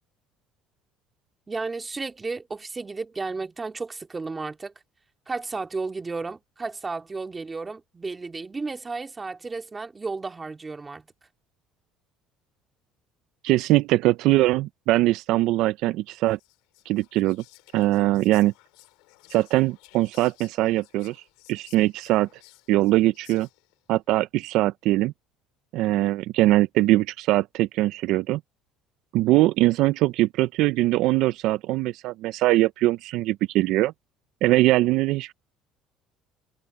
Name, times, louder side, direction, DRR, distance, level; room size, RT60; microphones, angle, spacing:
voice 1, 1.5-4.7 5.3-11.1, right 3 dB, 20° right, 2.8 m, -33 dB
voice 2, 13.4-16.4 16.9-17.4 17.7-18.5 19.3-21.2 21.5-22.3 22.7-23.5 23.9-25.1 25.7-28.4 29.1-33.9 34.4-35.3, right 17 dB, 70° right, 0.5 m, -22 dB
Whispering, 16.2-23.8, left 23 dB, 90° left, 3.1 m, -55 dB
cardioid pair, 110°, 0 cm